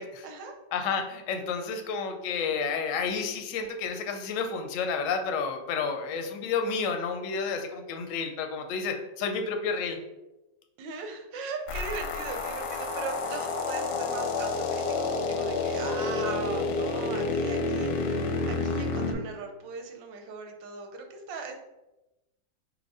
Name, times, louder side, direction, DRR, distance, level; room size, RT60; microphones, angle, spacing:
voice 1, 0.0-0.5 10.8-21.6, right 4 dB, 90° right, 4 dB, 1.4 m, -39 dB
voice 2, 0.7-10.0, left 5 dB, 65° left, 5 dB, 0.8 m, -30 dB
sound 1, 11.7-19.1, left 3 dB, 85° left, 1.3 m, -29 dB
5.1 x 2.1 x 4.7 m, 0.99 s
omnidirectional pair, 1.9 m